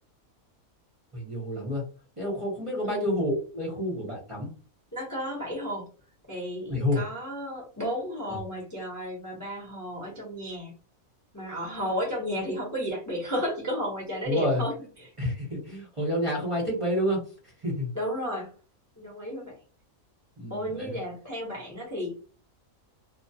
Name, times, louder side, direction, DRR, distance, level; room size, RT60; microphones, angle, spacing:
voice 1, 1.1-1.8 2.2-4.5 6.7-7.0 8.3-8.4 14.2-14.6 15.2-17.2 17.6-17.9 20.4-21.0, left 1 dB, 30° right, -4 dB, 0.7 m, -29 dB
voice 2, 4.9-5.8 6.3-10.7 11.3-14.7 15.0-15.1 17.9-18.5 19.0-19.5 20.5-22.2, equal, 20° left, -2 dB, 0.6 m, -33 dB
2.2 x 2.2 x 2.6 m, 0.37 s
omnidirectional pair, 1.5 m